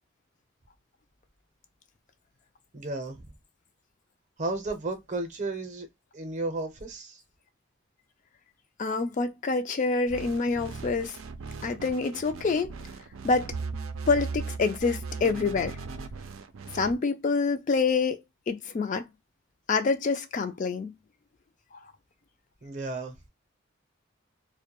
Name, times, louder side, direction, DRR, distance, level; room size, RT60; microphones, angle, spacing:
voice 1, 2.7-3.3 4.4-5.9 6.1-7.2 22.6-23.1, right 2 dB, 35° right, 0.6 m, -33 dB
voice 2, 8.8-11.2 11.6-12.7 13.2-13.5 14.1-15.8 16.7-19.1 19.7-20.9, left 4 dB, 40° left, 0.3 m, -27 dB
sound 1, 10.1-16.9, right 4 dB, 85° right, 0.4 m, -38 dB
2.2 x 2.1 x 2.9 m
head